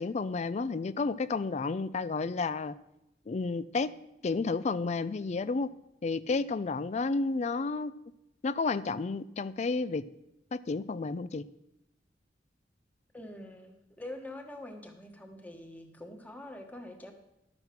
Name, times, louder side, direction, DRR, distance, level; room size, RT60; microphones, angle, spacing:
voice 1, 0.0-2.7 3.3-3.9 4.2-5.7 6.0-7.9 8.4-10.0 10.5-11.4, left 4 dB, 40° left, 16 dB, 0.4 m, -31 dB
voice 2, 13.1-17.1, left 1 dB, 10° left, 4 dB, 1.3 m, -45 dB
11.5 x 7.9 x 5.9 m, 0.87 s
head